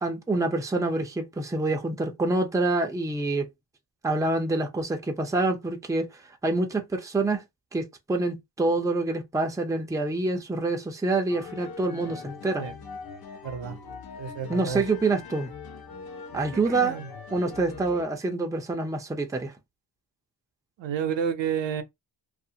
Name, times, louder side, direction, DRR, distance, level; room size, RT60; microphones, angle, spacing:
voice 1, 0.0-3.5 4.0-6.1 6.4-7.4 7.7-12.7 14.5-15.5 16.3-17.0 17.3-19.5, right 2 dB, 10° right, 0.5 m, -26 dB
sound 1, 11.3-18.0, left 5 dB, 55° left, 0.8 m, -42 dB
voice 2, 13.4-13.8 14.2-14.8 16.6-17.1 20.8-21.8, right 7 dB, 80° right, 0.7 m, -30 dB
2.4 x 2.4 x 2.7 m
cardioid pair, 85°, 43 cm